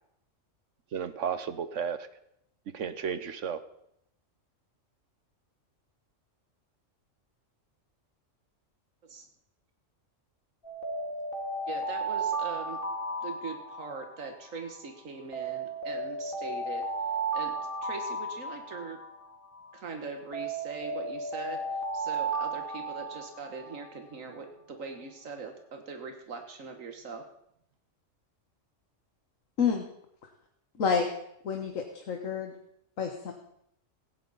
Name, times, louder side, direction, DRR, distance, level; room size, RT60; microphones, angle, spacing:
voice 1, 0.9-2.1 2.7-3.6, right 7 dB, 70° right, 12 dB, 1.3 m, -33 dB
Alarm, 10.6-14.8 15.3-19.8 20.3-24.1, right 3 dB, 45° left, 2.1 m, -34 dB
voice 2, 11.7-12.8 13.2-16.9 17.3-19.0 19.7-27.2, right 4 dB, 90° right, 5 dB, 1.8 m, -41 dB
voice 3, 30.8-31.1 31.4-32.6 33.0-33.3, left 6 dB, 85° left, 3 dB, 1.7 m, -29 dB
17.0 x 15.5 x 4.1 m, 0.75 s
omnidirectional pair, 1.3 m